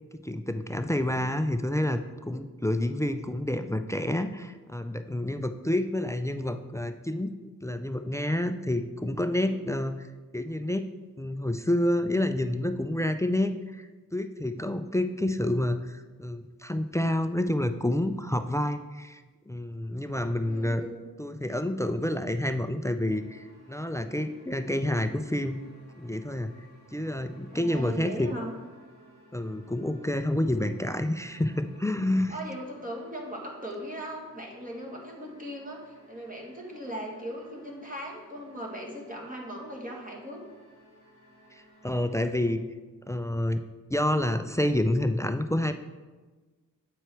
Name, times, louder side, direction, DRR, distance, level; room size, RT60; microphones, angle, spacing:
voice 1, 0.1-7.3 7.6-10.1 10.3-10.9 11.2-20.8 21.2-25.6 26.0-26.5 26.9-28.3 29.3-32.3 41.5-42.6 43.1-43.6 43.9-45.7, left 1 dB, 10° left, 9 dB, 0.4 m, -28 dB
voice 2, 20.4-21.1 27.5-28.5 32.3-40.4, equal, 25° right, -1 dB, 1.9 m, -39 dB
sound 1, 23.1-42.5, equal, 45° right, 2.2 m, -56 dB
8.1 x 4.5 x 4.4 m, 1.3 s
cardioid pair, 55°, 36 cm